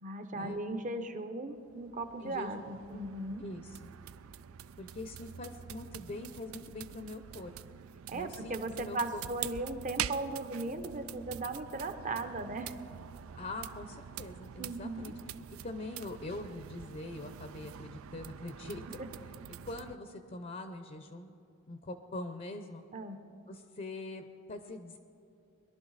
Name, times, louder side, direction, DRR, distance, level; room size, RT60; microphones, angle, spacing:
voice 1, 0.0-3.4 8.1-12.8 14.6-15.1 19.0-19.1 22.9-23.2, right 2 dB, 40° right, 8 dB, 0.8 m, -37 dB
sound 1, 1.5-20.0, right 9 dB, 85° right, 0.4 m, -45 dB
voice 2, 2.2-2.6 3.4-3.9 4.8-7.5 8.1-9.2 13.3-15.1 15.6-19.0 19.6-21.3 21.7-22.8 23.5-25.0, left 2 dB, 40° left, 8 dB, 0.6 m, -43 dB
21.5 x 11.5 x 4.1 m, 2.7 s
head